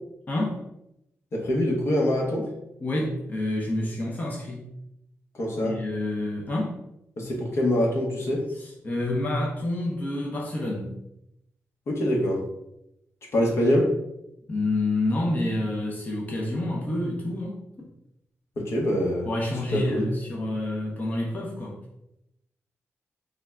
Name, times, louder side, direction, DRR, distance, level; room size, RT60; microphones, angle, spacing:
voice 1, 0.3-0.6 2.8-4.7 5.6-6.8 8.5-10.9 14.5-17.9 19.2-21.8, left 1 dB, 35° left, -2 dB, 0.6 m, -28 dB
voice 2, 1.3-2.5 5.4-5.8 7.2-8.5 11.9-12.4 13.3-13.9 18.6-19.3 19.7-20.1, left 1 dB, 60° left, -1 dB, 0.9 m, -24 dB
3.4 x 2.2 x 3.5 m, 0.83 s
cardioid pair, 95°, 5 cm